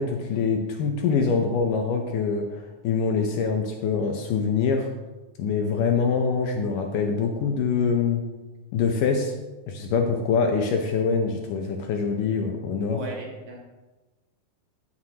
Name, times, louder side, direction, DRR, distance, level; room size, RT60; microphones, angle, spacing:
voice 1, 0.0-4.9 5.4-8.2 8.7-9.3 9.7-13.0, left 5 dB, 75° left, 3 dB, 2.2 m, -24 dB
voice 2, 12.9-13.6, right 1 dB, 60° right, -1 dB, 2.6 m, -35 dB
16.0 x 7.4 x 2.9 m, 1.1 s
omnidirectional pair, 4.3 m